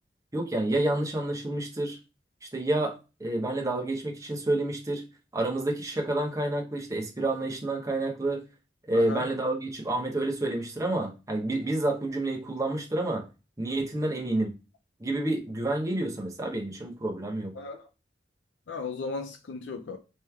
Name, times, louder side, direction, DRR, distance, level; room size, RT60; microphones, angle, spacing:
voice 1, 0.3-2.0 2.5-5.0 5.3-8.4 8.9-13.3 13.6-14.5 15.0-17.5, right 2 dB, 20° right, 0.8 m, -29 dB
voice 2, 8.9-9.2 17.6-17.8 18.7-20.0, left 4 dB, 85° left, 0.5 m, -36 dB
3.2 x 3.1 x 3.4 m
head